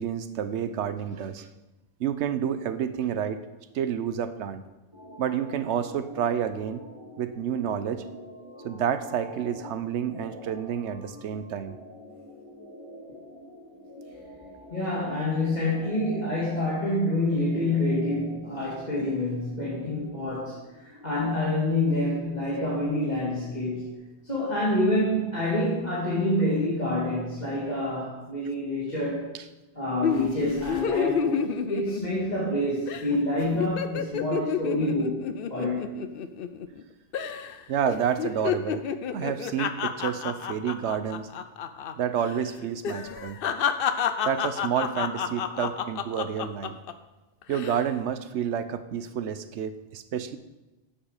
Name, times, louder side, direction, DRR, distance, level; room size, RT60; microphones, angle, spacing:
voice 1, 0.0-1.5 2.0-3.4 3.7-4.6 5.2-6.8 7.2-8.0 8.6-11.8 23.7-23.8 29.3-29.4 33.1-33.2 37.7-38.8 39.1-41.3 42.0-43.4 44.2-46.8 47.5-50.4, right 8 dB, 80° right, 12 dB, 1.0 m, -29 dB
sound 1, 4.9-23.9, left 1 dB, 25° right, 1.6 m, -46 dB
voice 2, 14.7-23.9 24.2-29.3 29.8-36.0, left 1 dB, 40° left, -7 dB, 2.1 m, -27 dB
sound 2, 30.0-32.6 32.9-33.1 33.4-36.8 37.1-37.6 37.9-41.9 42.2-42.4 42.8-46.9 47.4-47.8, left 7 dB, 60° left, 0.7 m, -30 dB
10.0 x 7.6 x 4.9 m, 1.1 s
omnidirectional pair, 1.2 m